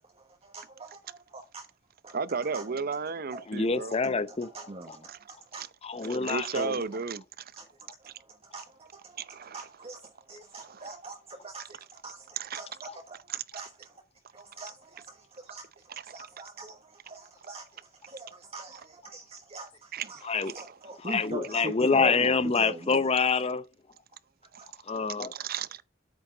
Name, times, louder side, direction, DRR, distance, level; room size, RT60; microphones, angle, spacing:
voice 1, 0.1-1.7 2.0-2.1 2.5-2.6 3.3-3.4 4.0-5.7 6.5-6.6 7.6-14.0 14.3-20.2 20.5-23.1 24.6-24.7 25.3-25.6, right 2 dB, 30° right, 1.4 m, -43 dB
voice 2, 2.1-3.9 5.1-5.2 5.6-5.7 6.0-7.2 9.2-9.7 10.6-10.9 12.4-12.6 13.3-13.6 16.0-16.1 19.9-20.1 20.4-20.8 25.3-25.8, right 5 dB, 50° right, 0.7 m, -34 dB
voice 3, 3.5-4.5 5.8-6.8 20.2-20.5 21.0-23.6 24.9-25.3, left 4 dB, 30° left, 0.7 m, -26 dB
8.7 x 8.7 x 3.9 m
head